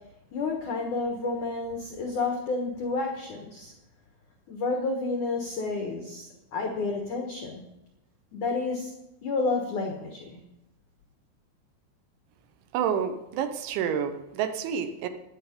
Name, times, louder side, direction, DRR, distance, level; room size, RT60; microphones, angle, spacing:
voice 1, 0.3-3.7 4.5-7.6 8.3-8.9 9.2-10.3, left 3 dB, 85° left, 2 dB, 1.7 m, -30 dB
voice 2, 12.7-15.1, right 8 dB, 80° right, 8 dB, 3.1 m, -29 dB
14.5 x 10.0 x 5.2 m, 0.92 s
omnidirectional pair, 5.7 m